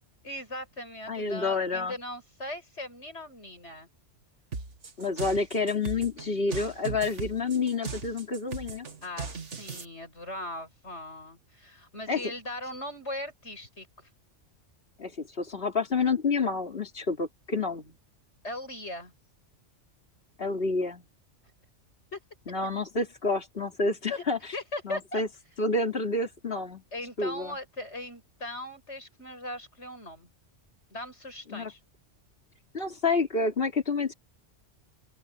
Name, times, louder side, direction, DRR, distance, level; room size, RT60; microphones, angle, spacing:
voice 1, 0.2-3.9 9.0-13.9 18.4-19.1 22.1-22.2 24.2-24.3 24.5-25.2 26.9-30.3 30.9-31.8, left 1 dB, 70° left, 8.2 m, -39 dB
voice 2, 1.1-1.9 5.0-8.9 12.1-12.2 15.0-17.9 20.4-21.0 22.5-24.4 24.8-25.3 25.6-26.8 27.2-27.6 31.5-31.7 32.7-34.1, left 3 dB, 50° left, 3.3 m, -29 dB
sound 1, 4.5-9.8, right 5 dB, 80° right, 2.1 m, -38 dB
open air
omnidirectional pair, 1.2 m